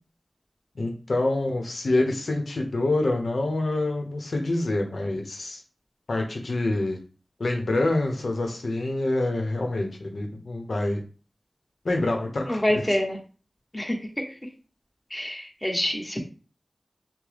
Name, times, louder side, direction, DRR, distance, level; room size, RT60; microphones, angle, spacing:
voice 1, 0.8-5.6 6.1-7.0 7.4-11.0 11.8-13.0, left 2 dB, 85° left, 3 dB, 0.9 m, -26 dB
voice 2, 12.5-13.2 13.7-14.0 15.1-16.2, left 1 dB, 20° left, 1 dB, 1.2 m, -26 dB
6.1 x 2.2 x 3.4 m, 0.36 s
wide cardioid pair, 40°, 0 cm